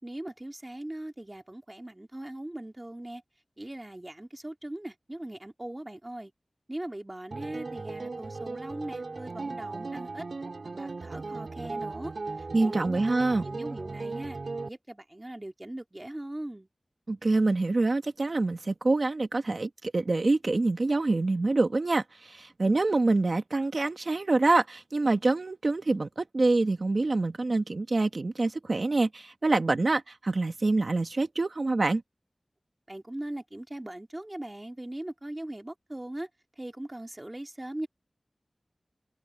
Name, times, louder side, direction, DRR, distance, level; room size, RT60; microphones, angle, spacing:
voice 1, 0.0-3.2 3.6-6.3 6.7-10.3 10.7-13.0 13.4-14.4 14.6-16.7 32.9-36.3 36.6-37.9, right 1 dB, 25° right, 2.2 m, -40 dB
sound 1, 7.3-14.7, right 3 dB, 85° right, 4.1 m, -37 dB
voice 2, 12.5-13.4 17.1-32.0, right 2 dB, 65° right, 1.4 m, -26 dB
wide cardioid pair, 60°, 0 cm